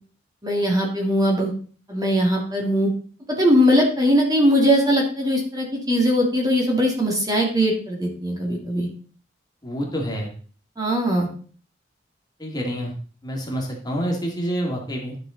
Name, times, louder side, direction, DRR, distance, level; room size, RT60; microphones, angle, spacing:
voice 1, 0.4-1.5 1.9-2.9 3.3-8.9 10.8-11.3, equal, 20° right, -1 dB, 2.1 m, -20 dB
voice 2, 9.6-10.3 12.4-12.9 13.2-15.2, equal, 20° left, -1 dB, 2.2 m, -27 dB
11.5 x 6.3 x 3.8 m, 0.43 s
head